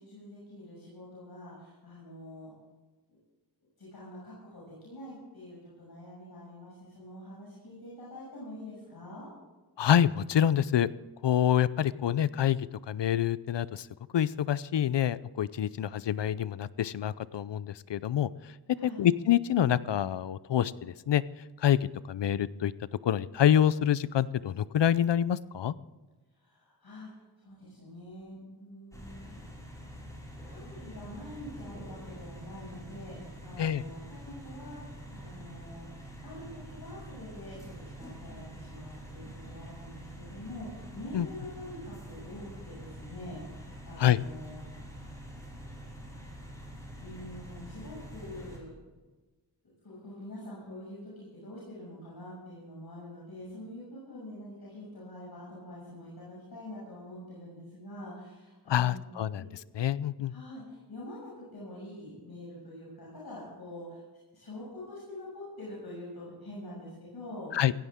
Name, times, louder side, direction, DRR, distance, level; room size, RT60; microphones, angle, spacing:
voice 1, 0.0-2.5 3.8-9.3 18.7-19.0 26.3-27.1 27.4-29.3 30.4-35.9 36.2-43.4 43.8-45.3 47.0-48.8 49.8-59.1 59.3-59.4 60.3-64.0 64.3-67.5, left 1 dB, 60° left, -7 dB, 6.5 m, -45 dB
voice 2, 9.8-10.9 11.2-13.9 14.1-18.3 18.8-21.2 21.6-21.8 22.1-22.7 23.0-25.7 33.6-33.8 41.1-41.3 44.0-44.2 58.7-59.4 59.8-60.3 67.5-67.7, left 10 dB, 80° left, 18 dB, 0.6 m, -26 dB
sound 1, 28.9-48.6, right 1 dB, 5° left, 5.2 m, -46 dB
17.0 x 16.5 x 3.7 m, 1.2 s
wide cardioid pair, 90°, 42 cm